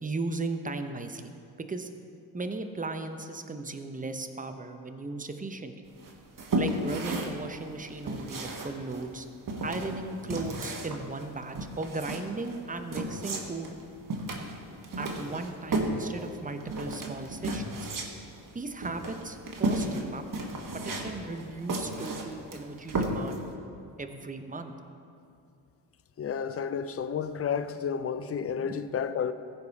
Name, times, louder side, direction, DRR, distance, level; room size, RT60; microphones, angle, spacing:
voice 1, 0.0-1.2 1.6-1.9 2.3-5.7 6.6-9.3 9.6-13.7 15.0-17.9 18.5-23.4 24.0-24.7, right 3 dB, 15° right, 0.9 m, -36 dB
sound 1, 6.0-23.5, right 2 dB, 40° right, 1.6 m, -34 dB
voice 2, 26.2-29.3, left 7 dB, 30° left, 0.5 m, -31 dB
15.0 x 5.3 x 4.1 m
hypercardioid pair, 50°, 49 cm